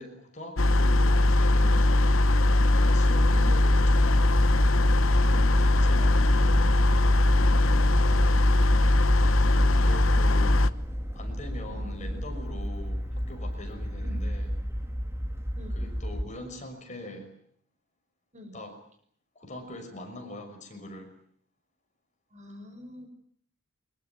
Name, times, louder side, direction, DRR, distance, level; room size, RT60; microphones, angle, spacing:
voice 1, 0.0-1.9 2.6-4.4 5.6-7.1 9.7-10.8 11.1-14.5 15.7-17.3 18.5-18.8 19.4-21.1, left 1 dB, 35° left, 5 dB, 6.0 m, -42 dB
sound 1, 0.6-10.7, left 1 dB, 70° left, 1.1 m, -21 dB
sound 2, 3.1-16.2, equal, 15° right, 3.1 m, -33 dB
voice 2, 3.3-3.6 5.3-5.6 11.7-11.9 14.0-14.3 15.6-15.8 18.3-18.6 22.3-23.1, equal, 35° right, 7 dB, 6.1 m, -45 dB
24.0 x 21.5 x 9.5 m, 0.62 s
head